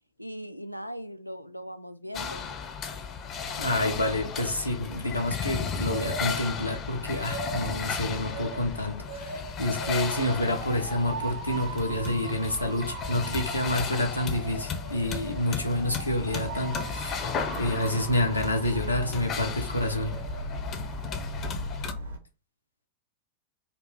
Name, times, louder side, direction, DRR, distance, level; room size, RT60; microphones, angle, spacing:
voice 1, 0.2-2.5 5.1-5.2, equal, 90° right, 0.4 m, -39 dB
sound 1, 2.1-21.9, left 6 dB, 30° left, 0.6 m, -35 dB
voice 2, 3.6-20.1, left 1 dB, 85° left, 0.8 m, -28 dB
Motor vehicle (road) / Siren, 5.4-22.2, right 2 dB, 75° right, 0.9 m, -39 dB
4.2 x 2.5 x 3.3 m
figure-of-eight pair, 90°, 0 cm